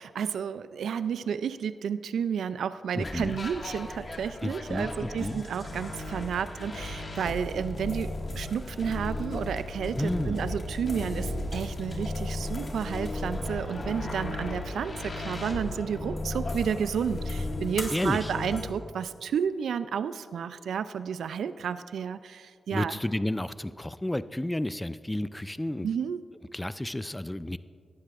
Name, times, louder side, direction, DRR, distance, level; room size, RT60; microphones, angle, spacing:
voice 1, 0.0-23.0 25.8-26.2, right 7 dB, 85° right, 13 dB, 0.3 m, -31 dB
voice 2, 2.9-3.4 4.4-5.4 9.9-10.5 17.9-18.3 22.7-25.9 26.5-27.6, left 1 dB, 10° left, 14 dB, 0.4 m, -31 dB
sound 1, 3.0-18.6, left 2 dB, 45° left, 1.8 m, -35 dB
18.0 x 11.5 x 2.5 m, 2.1 s
cardioid pair, 70°, 0 cm